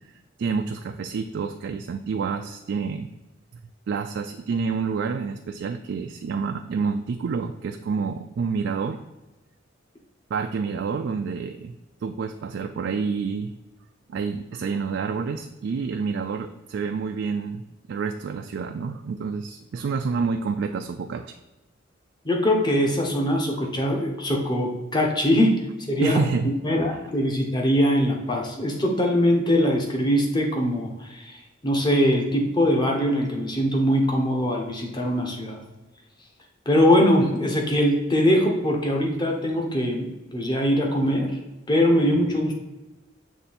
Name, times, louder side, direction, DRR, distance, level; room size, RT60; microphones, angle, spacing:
voice 1, 0.4-3.1 3.9-9.0 10.3-11.8 12.0-13.5 14.1-21.4 26.0-26.6 26.9-27.0, right 5 dB, 65° right, 5 dB, 0.3 m, -28 dB
voice 2, 22.2-26.2 26.4-31.4 31.6-35.6 36.7-41.4 41.7-42.6, equal, 25° left, 0 dB, 1.0 m, -22 dB
6.8 x 3.3 x 4.2 m, 1.0 s
head